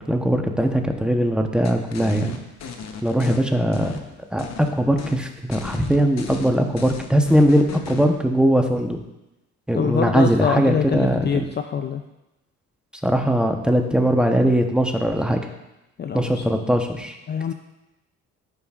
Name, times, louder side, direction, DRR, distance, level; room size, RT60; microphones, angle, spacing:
voice 1, 0.0-2.4 3.0-3.9 4.3-9.0 9.7-11.5 13.0-15.4 16.1-17.2, right 1 dB, 5° right, 3 dB, 0.9 m, -20 dB
sound 1, 1.6-3.4 3.7-4.7 5.0-5.2 5.5-8.1, left 6 dB, 60° left, 1.0 m, -35 dB
voice 2, 9.7-12.0 16.0-16.6 17.3-17.5, left 7 dB, 35° left, 7 dB, 0.5 m, -25 dB
13.5 x 5.3 x 2.5 m, 0.96 s
cardioid pair, 90°, 30 cm